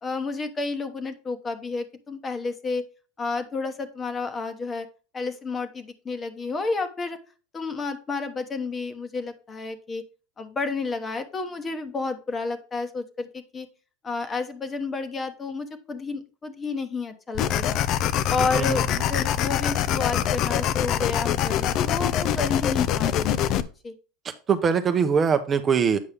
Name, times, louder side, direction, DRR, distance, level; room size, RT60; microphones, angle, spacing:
voice 1, 0.0-2.8 3.2-4.9 5.1-7.2 7.5-10.0 10.4-13.7 14.0-17.8 18.3-23.4 23.8-23.9, left 4 dB, 25° left, 9 dB, 1.1 m, -31 dB
sound 1, 17.3-23.6, left 10 dB, 50° left, 0.5 m, -24 dB
voice 2, 18.5-19.0 24.2-26.0, right 6 dB, 30° right, 8 dB, 0.7 m, -23 dB
8.4 x 5.4 x 3.4 m, 0.35 s
supercardioid pair, 115°, 0 cm